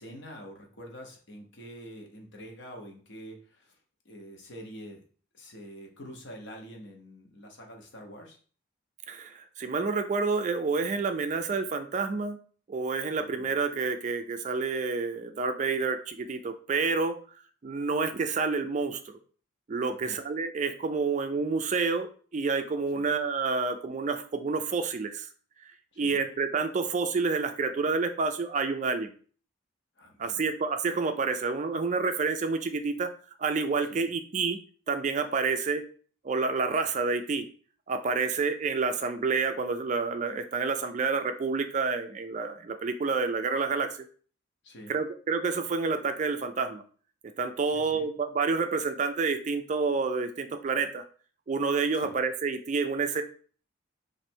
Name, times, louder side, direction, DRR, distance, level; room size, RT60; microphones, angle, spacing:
voice 1, 0.0-3.8 4.0-5.0 5.3-8.4 13.2-13.5 19.9-20.2 22.9-23.1 25.9-26.3 30.0-30.4 33.9-34.1 44.6-45.0 47.7-48.1 52.0-52.2, equal, 60° left, 2 dB, 0.9 m, -46 dB
voice 2, 9.1-12.4 12.7-17.2 17.6-19.2 19.7-25.3 25.6-29.1 30.2-33.1 33.4-34.6 34.9-35.8 36.2-37.5 37.9-44.0 44.9-46.8 47.4-51.0 51.5-53.2, right 4 dB, 35° right, 7 dB, 0.3 m, -29 dB
3.1 x 2.5 x 4.4 m, 0.42 s
head